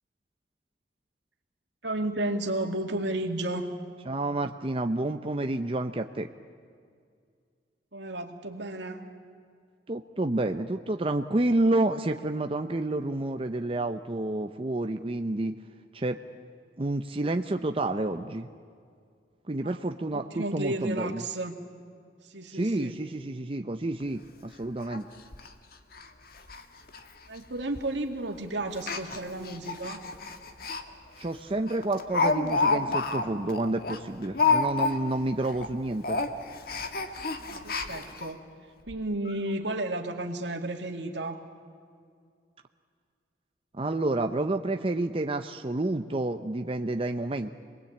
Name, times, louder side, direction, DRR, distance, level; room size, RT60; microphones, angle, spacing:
voice 1, 1.8-3.7 7.9-9.0 19.6-21.6 22.2-23.0 27.3-30.0 37.4-38.4 38.9-41.4, right 1 dB, 80° right, 4 dB, 2.2 m, -33 dB
voice 2, 4.1-6.3 9.9-15.5 15.9-16.2 16.8-18.5 19.5-21.2 22.5-25.1 31.2-36.2 43.7-47.5, right 2 dB, 30° right, 6 dB, 0.7 m, -29 dB
Speech, 24.0-24.1 24.4-24.5 24.9-25.0 25.3-25.5 25.9-26.1 26.3-26.6 26.9-27.0 27.8-28.0 28.7-30.8 31.2-31.3 31.7-35.2 35.5-35.7 36.0-38.3 38.9-39.0 39.3-39.4, left 4 dB, 55° left, 1.5 m, -29 dB
27.0 x 20.5 x 8.6 m, 2.2 s
head